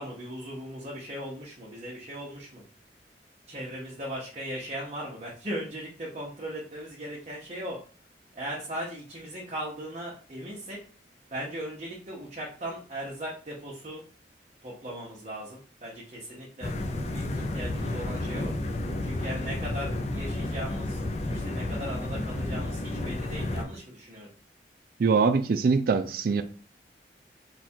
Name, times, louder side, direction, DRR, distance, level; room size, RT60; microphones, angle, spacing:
voice 1, 0.0-2.6 3.5-7.8 8.3-10.8 11.3-14.0 14.6-16.7 17.1-18.5 19.0-21.0 21.3-24.3, equal, 35° right, 1.0 m, -38 dB
sound 1, 16.6-23.6, left 1 dB, 40° left, 0.5 m, -31 dB
voice 2, 25.0-26.4, right 5 dB, 55° right, 0.3 m, -23 dB
4.1 x 2.4 x 4.3 m
head